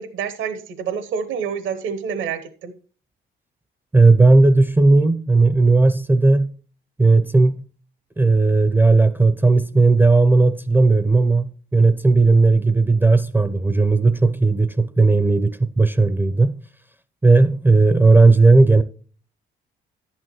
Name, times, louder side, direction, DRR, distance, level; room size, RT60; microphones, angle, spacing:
voice 1, 0.0-2.7, right 7 dB, 80° right, 0.9 m, -28 dB
voice 2, 3.9-6.5 7.0-7.6 8.2-16.5 17.2-18.8, right 3 dB, 10° right, 0.4 m, -15 dB
11.0 x 8.7 x 3.0 m
cardioid pair, 90°, 20 cm